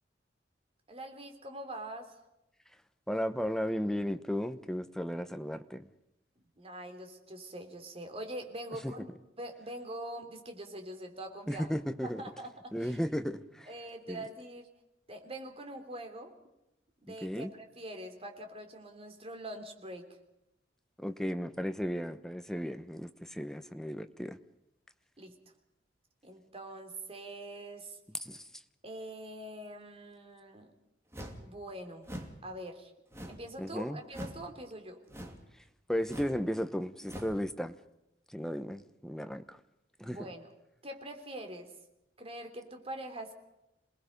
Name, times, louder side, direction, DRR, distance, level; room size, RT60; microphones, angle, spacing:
voice 1, 0.9-2.1 6.6-9.1 9.4-11.7 12.0-13.0 13.7-14.7 15.1-16.3 17.0-20.1 25.2-25.4 26.2-28.0 28.8-30.7 31.4-32.1 32.4-32.9 33.3-35.0 40.0-40.5 40.8-41.7 42.2-43.3, right 1 dB, 35° right, 5 dB, 3.1 m, -44 dB
voice 2, 3.1-5.9 8.8-8.9 11.5-12.2 12.7-13.7 14.1-14.2 17.1-17.5 21.0-24.4 28.2-28.4 33.6-34.0 35.9-37.8 38.3-39.6 40.0-40.3, equal, 5° left, 10 dB, 0.9 m, -35 dB
sound 1, 31.1-31.5 32.0-32.4 33.1-33.5 34.1-34.4 35.1-35.5 36.0-36.4 37.0-37.4, equal, 15° right, 2.8 m, -43 dB
27.5 x 19.5 x 5.3 m, 0.88 s
head